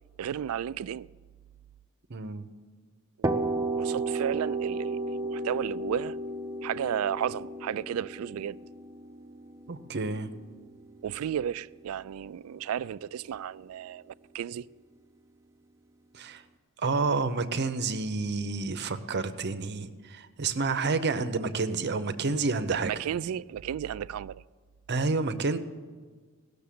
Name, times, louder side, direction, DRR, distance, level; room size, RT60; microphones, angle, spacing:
voice 1, 0.2-1.1 3.2-3.3 3.8-6.2 6.6-8.6 11.0-14.7 22.7-24.4, right 9 dB, 75° right, 0.3 m, -33 dB
voice 2, 2.1-2.5 9.7-10.3 16.1-16.4 16.8-22.9 24.9-25.6, right 4 dB, 50° right, 0.8 m, -29 dB
sound 1, 3.2-11.0, right 2 dB, 15° right, 0.7 m, -33 dB
17.0 x 6.7 x 8.5 m
head